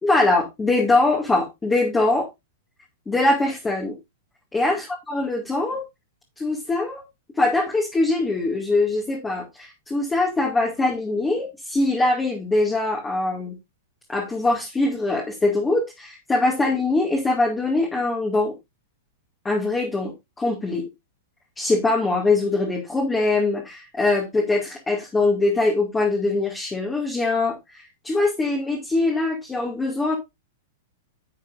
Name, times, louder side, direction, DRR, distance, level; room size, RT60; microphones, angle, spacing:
voice 1, 0.0-2.3 3.1-4.0 4.5-5.8 6.4-7.0 7.4-13.5 14.1-18.5 19.4-20.8 21.6-30.2, left 2 dB, 10° left, 2.3 m, -22 dB
11.0 x 8.0 x 2.6 m
hypercardioid pair, 145°, 0 cm